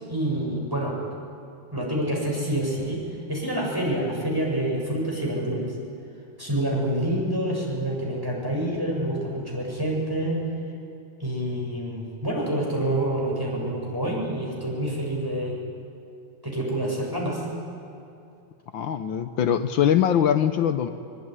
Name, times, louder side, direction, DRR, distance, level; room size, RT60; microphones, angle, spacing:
voice 1, 0.1-1.0 1.7-5.7 6.4-10.4 11.2-15.6 16.4-17.5, right 1 dB, 10° right, -2 dB, 7.6 m, -27 dB
voice 2, 18.7-20.9, left 9 dB, 75° left, 8 dB, 1.7 m, -22 dB
24.5 x 23.0 x 9.8 m, 2.6 s
omnidirectional pair, 2.1 m